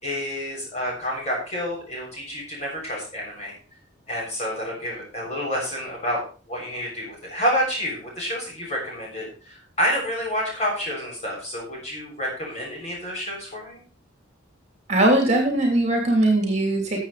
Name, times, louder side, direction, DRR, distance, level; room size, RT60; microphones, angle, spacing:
voice 1, 0.0-3.5 4.1-6.2 6.5-13.8, equal, 35° left, -2 dB, 6.5 m, -29 dB
voice 2, 14.9-17.0, right 1 dB, 35° right, 1 dB, 3.0 m, -20 dB
14.5 x 7.5 x 4.2 m, 0.38 s
head